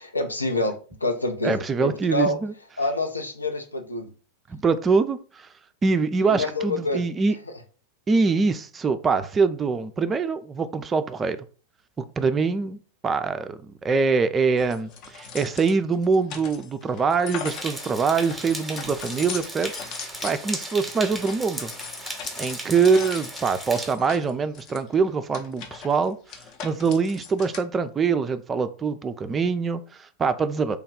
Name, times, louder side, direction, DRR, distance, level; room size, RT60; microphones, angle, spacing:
voice 1, 0.0-2.4 2.8-4.1 6.2-7.0, left 2 dB, 80° left, 0.6 m, -27 dB
voice 2, 1.4-2.5 4.5-5.5 5.8-7.4 8.1-11.4 12.0-21.7 22.4-30.8, right 5 dB, 20° right, 0.3 m, -24 dB
sound 1, 14.6-27.6, left 6 dB, 40° left, 0.6 m, -40 dB
sound 2, 17.4-23.9, right 1 dB, 5° right, 0.8 m, -36 dB
3.3 x 2.2 x 3.6 m
figure-of-eight pair, 90°, 0 cm